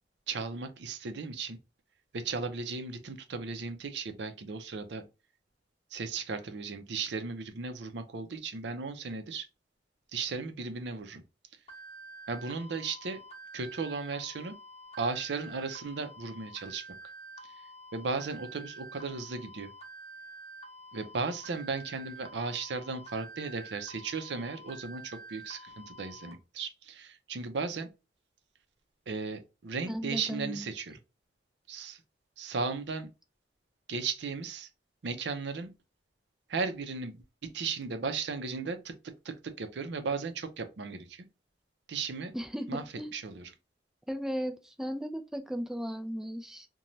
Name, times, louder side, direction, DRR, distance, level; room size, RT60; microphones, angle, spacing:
voice 1, 0.3-1.6 2.1-5.0 5.9-9.5 10.1-11.2 12.3-13.2 13.5-14.6 15.0-16.8 17.9-19.7 20.9-27.9 29.1-31.0 31.7-32.0 32.4-33.1 33.9-34.7 35.0-35.7 36.5-41.3 41.9-42.3 42.7-42.8 43.1-43.5, right 4 dB, 75° right, 0.5 m, -36 dB
sound 1, 11.7-26.3, right 2 dB, 35° left, 0.9 m, -48 dB
voice 2, 29.8-30.6 42.3-43.1 44.1-46.7, equal, 5° right, 0.3 m, -36 dB
3.0 x 2.2 x 2.6 m
head